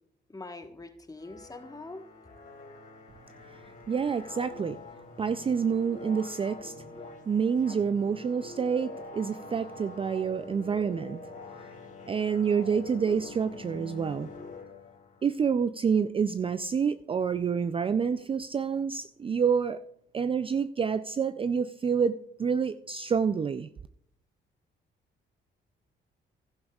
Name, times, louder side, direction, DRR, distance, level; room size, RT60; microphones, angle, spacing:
voice 1, 0.3-2.1, left 2 dB, 20° left, 1.3 m, -43 dB
sound 1, 1.2-15.3, left 3 dB, 40° left, 2.3 m, -45 dB
voice 2, 3.9-4.8 5.2-6.7 7.3-11.3 12.1-14.3 15.2-19.9 20.1-23.7, right 6 dB, 25° right, 0.4 m, -28 dB
16.0 x 11.5 x 2.4 m
cardioid pair, 90°, 20 cm